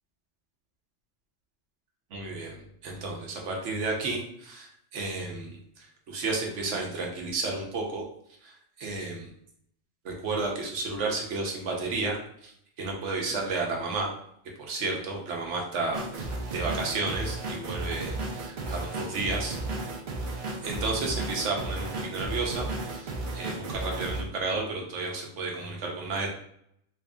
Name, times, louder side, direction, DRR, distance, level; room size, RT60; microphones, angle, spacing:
voice 1, 2.1-8.1 8.4-9.3 10.0-12.5 12.8-14.1 14.6-19.6 20.6-26.3, right 3 dB, 80° right, 0 dB, 1.1 m, -32 dB
sound 1, 15.9-24.2, right 2 dB, 50° right, 0.6 m, -34 dB
3.1 x 2.7 x 3.5 m, 0.70 s
omnidirectional pair, 1.2 m